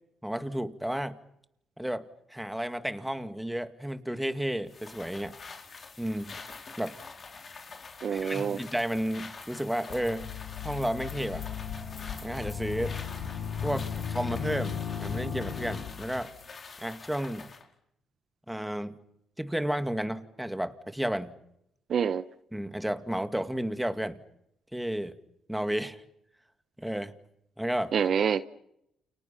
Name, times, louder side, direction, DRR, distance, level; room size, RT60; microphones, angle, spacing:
voice 1, 0.2-1.2 1.8-2.0 2.3-5.3 6.0-6.4 6.8-7.0 8.1-10.3 10.6-11.4 12.2-12.9 13.6-16.3 16.8-17.5 18.5-19.0 19.4-21.3 22.5-24.2 24.7-25.2 25.5-26.0 26.8-27.2 27.6-27.9, equal, 5° right, 9 dB, 2.2 m, -32 dB
sound 1, 4.7-17.7, left 4 dB, 40° left, 4.4 m, -46 dB
voice 2, 8.0-8.6 21.9-22.2 27.9-28.5, right 7 dB, 55° right, 13 dB, 0.9 m, -26 dB
sound 2, 9.9-16.2, left 7 dB, 70° left, 6.5 m, -36 dB
30.0 x 28.5 x 5.9 m, 0.78 s
cardioid pair, 90°, 0 cm